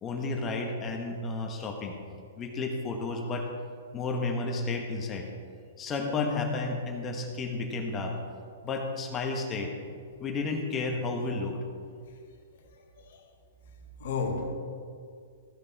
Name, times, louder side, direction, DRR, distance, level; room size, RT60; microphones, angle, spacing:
voice 1, 0.0-2.0 2.4-3.5 3.9-5.3 5.8-8.2 8.6-9.7 10.2-11.6, left 3 dB, 25° left, 1.2 m, -32 dB
voice 2, 12.5-13.2 14.0-14.5, left 4 dB, 65° left, 1.4 m, -34 dB
15.0 x 5.4 x 4.1 m
hypercardioid pair, 130°, 0 cm